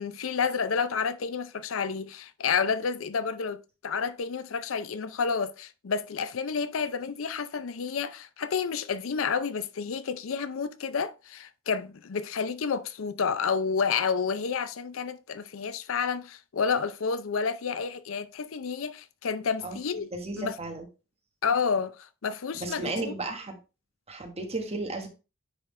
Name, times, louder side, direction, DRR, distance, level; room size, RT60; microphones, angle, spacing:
voice 1, 0.0-20.1 20.4-20.5 21.4-22.0 22.2-23.1, left 5 dB, 75° left, 0.5 m, -30 dB
voice 2, 20.1-20.9 22.5-23.6 24.1-25.1, right 2 dB, 30° right, 1.3 m, -34 dB
9.8 x 3.8 x 3.2 m
head